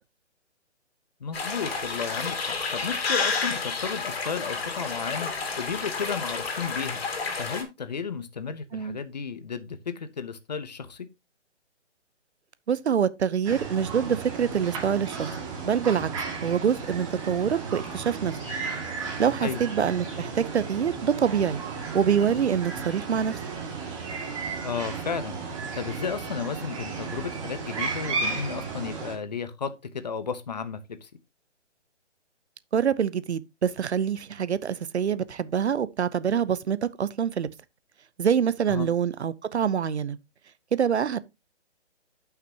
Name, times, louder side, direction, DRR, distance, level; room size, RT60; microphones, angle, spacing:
voice 1, 1.2-5.3 5.6-7.0 7.4-11.1 19.4-19.6 24.6-25.4 25.7-31.1 38.7-38.9, left 6 dB, 35° left, 0.7 m, -33 dB
sound 1, 1.3-7.6, left 4 dB, 55° left, 2.5 m, -30 dB
voice 2, 12.7-15.3 15.6-16.1 16.4-18.4 19.2-21.6 21.9-23.4 32.7-37.5 38.2-40.2 40.7-41.2, right 7 dB, 65° right, 0.7 m, -25 dB
sound 2, 13.5-29.2, right 4 dB, 25° right, 2.2 m, -34 dB
11.0 x 5.9 x 2.8 m
hypercardioid pair, 165°, 36 cm